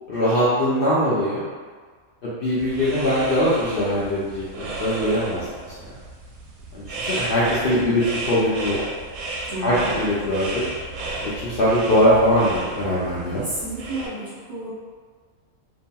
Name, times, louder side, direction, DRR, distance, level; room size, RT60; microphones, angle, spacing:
voice 1, 0.1-1.4 2.2-5.4 6.7-8.8 9.6-10.6 11.2-13.4, equal, 60° left, -9 dB, 0.6 m, -21 dB
sound 1, 2.6-14.1, right 2 dB, 90° right, 1.0 m, -33 dB
voice 2, 9.5-9.9 13.4-14.7, right 1 dB, 50° right, -10 dB, 0.7 m, -31 dB
2.8 x 2.7 x 2.2 m, 1.6 s
omnidirectional pair, 1.4 m